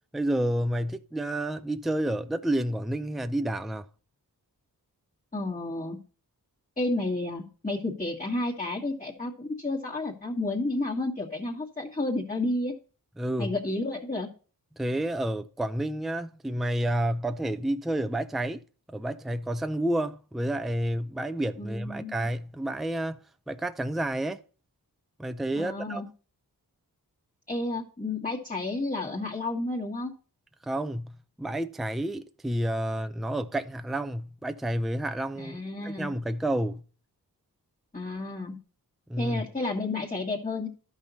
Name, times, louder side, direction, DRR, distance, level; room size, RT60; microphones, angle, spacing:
voice 1, 0.1-3.9 13.2-13.6 14.8-18.6 18.9-23.2 23.5-24.4 25.2-26.0 30.6-35.6 35.8-36.8 39.1-39.4, right 1 dB, ahead, 0.4 m, -30 dB
voice 2, 5.3-6.0 6.8-12.7 13.4-14.3 21.6-22.1 25.5-26.1 27.5-30.1 35.4-36.1 37.9-38.6 39.2-40.7, left 2 dB, 20° left, 1.6 m, -31 dB
12.0 x 5.6 x 4.1 m
wide cardioid pair, 60°, 38 cm